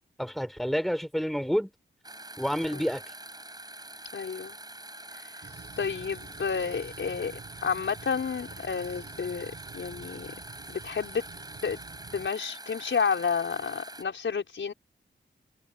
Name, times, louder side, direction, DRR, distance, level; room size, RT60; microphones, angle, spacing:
voice 1, 0.2-1.7 2.4-3.0, equal, ahead, 4.1 m, -29 dB
sound 1, 2.0-14.0, right 1 dB, 20° right, 7.7 m, -45 dB
voice 2, 4.1-4.6 5.8-7.3 7.6-10.3 10.7-11.2 11.6-11.8 12.1-14.7, left 6 dB, 75° left, 5.6 m, -30 dB
sound 2, 5.4-12.3, right 4 dB, 60° right, 5.6 m, -48 dB
cardioid pair, 55°, 20 cm